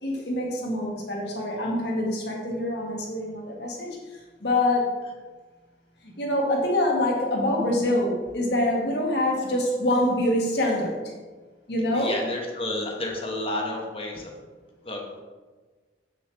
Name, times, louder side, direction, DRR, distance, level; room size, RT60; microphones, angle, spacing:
voice 1, 0.0-4.9 6.0-11.1 11.7-12.2, left 1 dB, 65° left, -1 dB, 1.6 m, -25 dB
voice 2, 11.9-14.3 14.8-15.2, left 1 dB, 30° left, 0 dB, 1.1 m, -31 dB
7.6 x 6.5 x 3.4 m, 1.3 s
head